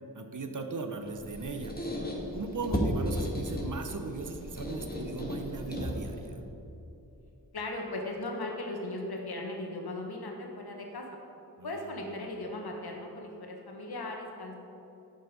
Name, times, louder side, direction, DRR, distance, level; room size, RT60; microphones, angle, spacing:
voice 1, 0.1-1.7 2.3-6.4 11.6-11.9, right 3 dB, 50° right, 6 dB, 0.8 m, -38 dB
Squeak, 1.1-6.3, equal, 25° left, 1.6 m, -35 dB
voice 2, 7.5-11.0 11.6-14.5, left 2 dB, 75° left, 1 dB, 1.3 m, -37 dB
7.7 x 5.4 x 5.2 m, 2.9 s
cardioid pair, 45°, 38 cm